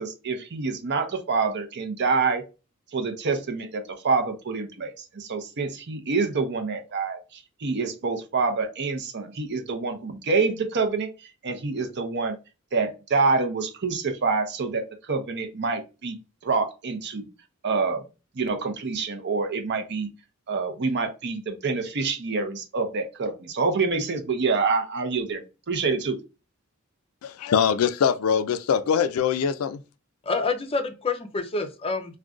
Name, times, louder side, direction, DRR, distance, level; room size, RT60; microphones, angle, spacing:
voice 1, 0.0-2.4 2.9-11.1 11.4-12.4 12.7-14.8 15.1-16.2 16.4-17.3 17.6-18.0 18.4-20.1 20.5-26.2, right 4 dB, 55° right, 0.6 m, -26 dB
voice 2, 27.2-29.8, left 7 dB, 85° left, 0.4 m, -23 dB
voice 3, 30.2-32.2, left 3 dB, 25° left, 0.5 m, -27 dB
2.5 x 2.2 x 3.6 m
head